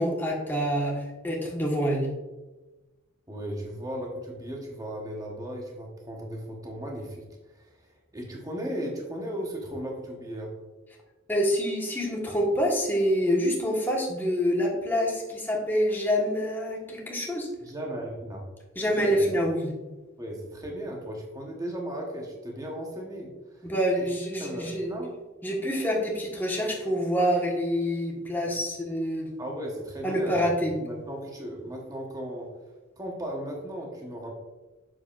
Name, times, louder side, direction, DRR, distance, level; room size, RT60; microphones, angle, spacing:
voice 1, 0.0-2.1 11.3-17.5 18.7-19.7 23.6-24.9 25.4-29.3 30.0-30.7, equal, 10° left, -3 dB, 1.4 m, -26 dB
voice 2, 3.3-7.9 8.1-10.5 17.6-18.4 18.9-19.2 20.2-23.7 24.0-24.1 24.4-25.1 28.5-28.6 29.4-30.4 30.8-32.5 33.0-34.4, equal, 20° right, -1 dB, 1.1 m, -36 dB
7.6 x 6.5 x 2.5 m, 1.1 s
head